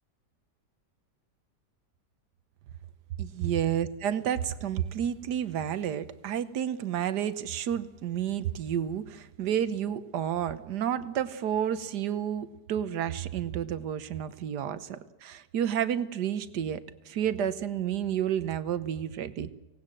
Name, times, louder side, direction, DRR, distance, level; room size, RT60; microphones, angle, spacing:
voice 1, 3.2-16.8 17.0-19.5, right 9 dB, 70° right, 13 dB, 1.6 m, -30 dB
24.0 x 18.5 x 7.6 m, 1.0 s
omnidirectional pair, 1.9 m